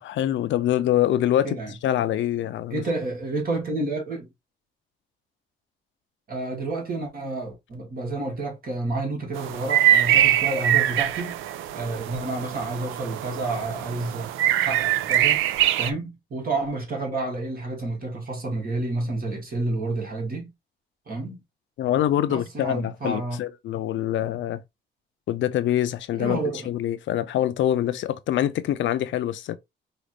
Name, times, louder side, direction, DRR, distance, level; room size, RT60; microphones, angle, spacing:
voice 1, 0.0-1.6 1.8-2.8 21.8-24.6 25.3-26.4 26.7-29.6, left 12 dB, 70° left, 0.5 m, -25 dB
voice 2, 2.7-4.3 6.3-11.4 11.7-15.4 15.8-20.5 21.1-21.4 22.3-23.4 26.2-26.7, right 2 dB, 50° right, 2.0 m, -30 dB
sound 1, 9.4-15.9, right 12 dB, 85° right, 0.4 m, -23 dB
4.9 x 2.5 x 3.2 m
cardioid pair, 90°, 20 cm